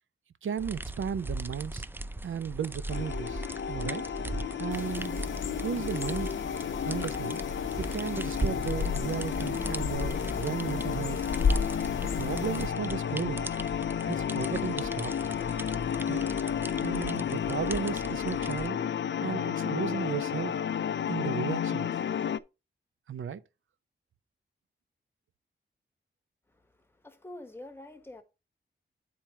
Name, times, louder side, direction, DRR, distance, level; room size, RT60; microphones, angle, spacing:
voice 1, 0.4-1.8 2.2-4.0 4.6-5.2 5.6-6.4 6.8-7.4 7.8-11.2 12.0-13.5 14.1-15.4 16.0-18.8 19.2-20.5 21.1-21.9 23.1-23.4, right 7 dB, 85° right, 0.6 m, -35 dB
sound 1, 0.6-18.7, right 2 dB, 10° right, 0.4 m, -39 dB
sound 2, 2.9-22.4, left 8 dB, 70° left, 0.4 m, -32 dB
sound 3, 4.7-12.7, left 5 dB, 85° left, 1.0 m, -34 dB
voice 2, 26.5-28.2, left 1 dB, 10° left, 1.4 m, -47 dB
9.2 x 4.4 x 4.5 m
wide cardioid pair, 110°, 20 cm